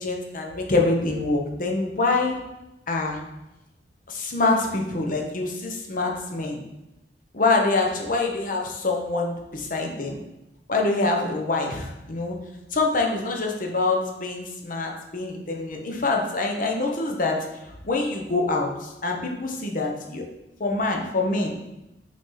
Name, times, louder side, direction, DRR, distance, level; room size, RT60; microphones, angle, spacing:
voice 1, 0.0-2.4 2.9-3.2 4.1-6.6 7.3-10.2 10.7-12.4 12.7-17.5 17.8-20.2 20.6-21.5, left 3 dB, 50° left, 1 dB, 0.9 m, -25 dB
6.2 x 4.2 x 3.8 m, 0.95 s
head